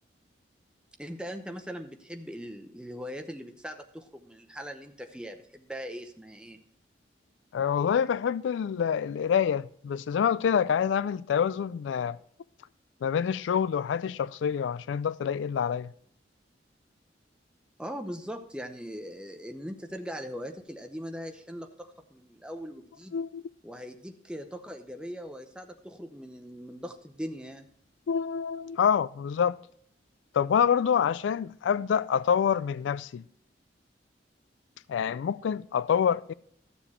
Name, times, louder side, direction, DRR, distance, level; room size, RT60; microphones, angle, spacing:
voice 1, 1.0-6.6 17.8-23.2 23.6-27.7, equal, 5° right, 0.8 m, -40 dB
voice 2, 7.5-12.2 13.0-15.9 23.1-23.4 28.1-29.6 30.3-33.2 34.9-36.3, left 7 dB, 85° left, 0.3 m, -26 dB
13.0 x 7.0 x 4.2 m
head